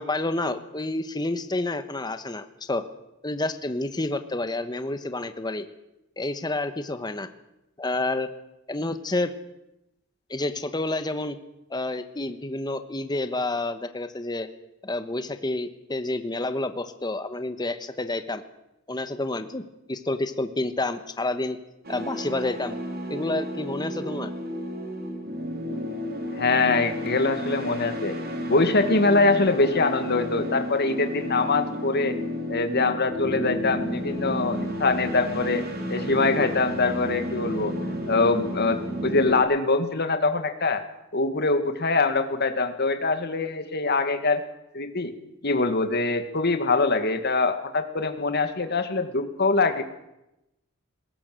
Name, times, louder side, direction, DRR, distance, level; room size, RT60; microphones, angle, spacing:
voice 1, 0.0-2.8 3.2-5.6 6.2-7.3 7.8-8.3 8.7-9.3 10.3-11.4 11.7-14.5 14.8-18.4 18.9-21.6 21.9-22.8 23.1-24.3, left 2 dB, 20° left, 10 dB, 1.1 m, -29 dB
sound 1, 21.8-39.4, equal, 50° right, 3.3 m, -32 dB
voice 2, 26.3-28.2 28.5-32.2 32.5-35.6 35.9-37.7 38.1-40.8 41.1-44.4 44.7-45.1 45.4-49.8, left 3 dB, 50° left, 8 dB, 1.9 m, -23 dB
20.5 x 17.5 x 7.7 m, 0.90 s
head